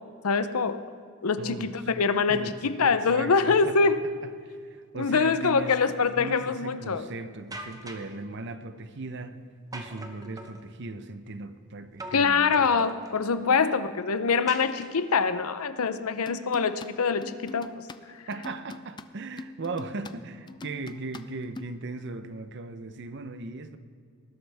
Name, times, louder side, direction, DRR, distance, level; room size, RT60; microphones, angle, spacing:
voice 1, 0.2-0.8 1.2-4.0 5.0-7.1 12.1-17.7, left 5 dB, 85° left, 12 dB, 0.7 m, -24 dB
voice 2, 1.4-1.7 2.3-3.9 4.4-5.8 6.2-9.4 9.7-12.6 18.3-23.8, right 3 dB, 55° right, 11 dB, 0.7 m, -38 dB
sound 1, 7.5-8.2 9.7-10.6 12.0-12.3 12.5-13.2 14.5-15.2, right 1 dB, 15° right, 0.8 m, -42 dB
sound 2, 16.3-19.1 19.4-20.1 20.5-21.7, left 2 dB, 20° left, 0.4 m, -43 dB
19.5 x 11.5 x 3.5 m, 2.2 s
head